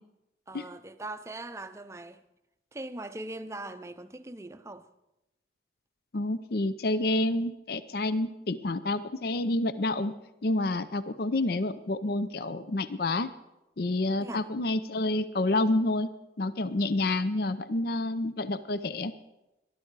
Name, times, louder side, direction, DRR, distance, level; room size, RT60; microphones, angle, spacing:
voice 1, 0.5-2.2 2.7-4.9 14.2-14.4, right 2 dB, 15° right, 0.6 m, -40 dB
voice 2, 6.1-10.1 10.4-13.3 13.8-16.1 16.4-19.1, left 2 dB, 55° left, 0.6 m, -28 dB
19.5 x 11.5 x 4.7 m
head